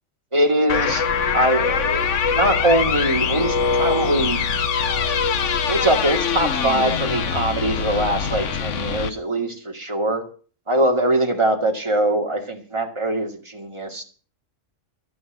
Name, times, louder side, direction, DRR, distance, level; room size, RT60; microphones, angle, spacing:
voice 1, 0.3-1.0 1.3-4.4 5.7-10.3 10.7-14.0, right 1 dB, 20° right, 3 dB, 2.4 m, -22 dB
sound 1, 0.7-9.1, left 6 dB, 60° left, 1.2 m, -23 dB
13.0 x 9.5 x 7.5 m, 0.41 s
omnidirectional pair, 1.5 m